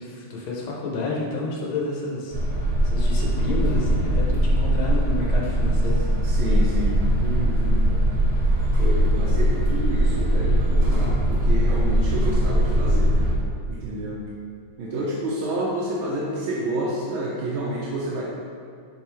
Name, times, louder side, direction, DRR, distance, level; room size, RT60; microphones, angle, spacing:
voice 1, 0.0-2.3 2.8-6.0, left 3 dB, 85° left, -3 dB, 1.7 m, -30 dB
sound 1, 2.3-13.4, right 1 dB, 40° right, 1.1 m, -21 dB
voice 2, 6.2-7.9 8.8-13.1 13.7-14.2 14.8-18.2, right 1 dB, 85° right, -5 dB, 1.6 m, -29 dB
5.8 x 3.7 x 4.4 m, 2.3 s
omnidirectional pair, 2.2 m